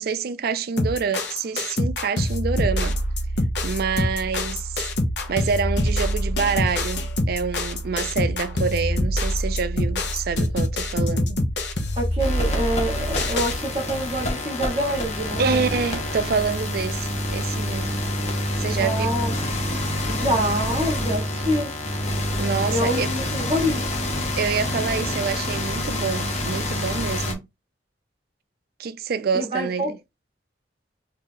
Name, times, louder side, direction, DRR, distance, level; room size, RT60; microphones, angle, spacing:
voice 1, 0.0-3.0 3.6-4.9 5.3-11.4 15.4-18.0 18.6-19.2 22.4-23.1 24.4-27.5 28.8-30.0, right 5 dB, 55° right, 0.4 m, -27 dB
sound 1, 0.8-13.6, left 1 dB, 65° left, 0.9 m, -25 dB
voice 2, 11.9-15.6 18.8-19.3 20.1-21.7 22.7-24.0 29.3-29.9, equal, 30° right, 0.9 m, -26 dB
sound 2, 12.2-27.3, left 1 dB, 35° left, 0.9 m, -27 dB
2.9 x 2.7 x 3.7 m
head